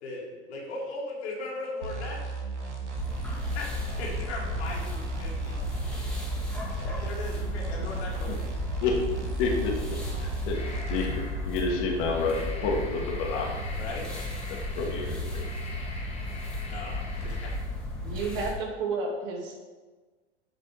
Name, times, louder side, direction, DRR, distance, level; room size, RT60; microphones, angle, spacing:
voice 1, 0.0-2.3 3.5-5.6 6.8-8.3 13.7-14.0 16.7-17.5, left 2 dB, 70° left, -3 dB, 2.7 m, -38 dB
sound 1, 1.8-11.3, right 4 dB, 90° right, 1.3 m, -36 dB
sound 2, 2.9-18.5, left 1 dB, 5° left, 1.5 m, -34 dB
voice 2, 9.4-9.7 10.5-10.6 10.9-11.1 11.5-13.5 14.7-15.5, left 4 dB, 50° left, 0 dB, 1.9 m, -28 dB
sound 3, 10.5-11.5 12.0-17.6, left 2 dB, 20° left, 1.9 m, -44 dB
voice 3, 18.0-19.6, right 4 dB, 50° right, 0 dB, 2.2 m, -31 dB
8.2 x 5.3 x 4.8 m, 1.3 s
hypercardioid pair, 95°, 34 cm